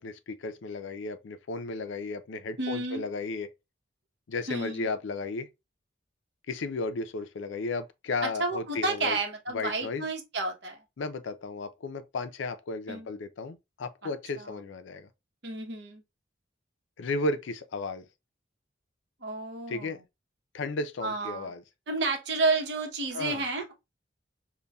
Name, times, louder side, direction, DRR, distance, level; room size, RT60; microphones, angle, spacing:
voice 1, 0.0-3.5 4.3-5.5 6.5-9.2 9.5-10.1 11.0-15.1 17.0-18.1 19.7-20.0 20.5-21.6 23.1-23.4, left 3 dB, 75° left, 0.4 m, -34 dB
voice 2, 2.6-3.0 4.5-4.9 8.2-10.8 12.9-13.1 14.0-14.1 14.4-14.5 15.4-16.0 19.2-20.0 21.0-21.5 21.9-23.7, right 3 dB, 60° right, 0.8 m, -31 dB
5.2 x 2.2 x 2.2 m
head